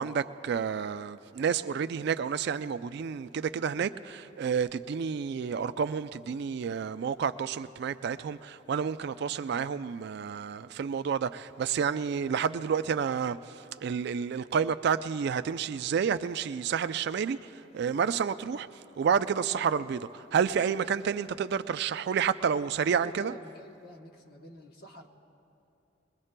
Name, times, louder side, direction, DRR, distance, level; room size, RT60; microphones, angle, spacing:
voice 1, 0.0-13.4 13.8-18.7 19.0-23.3, right 7 dB, 55° right, 0.3 m, -30 dB
voice 2, 23.0-25.1, right 1 dB, 50° left, 1.0 m, -48 dB
21.5 x 21.5 x 2.2 m
head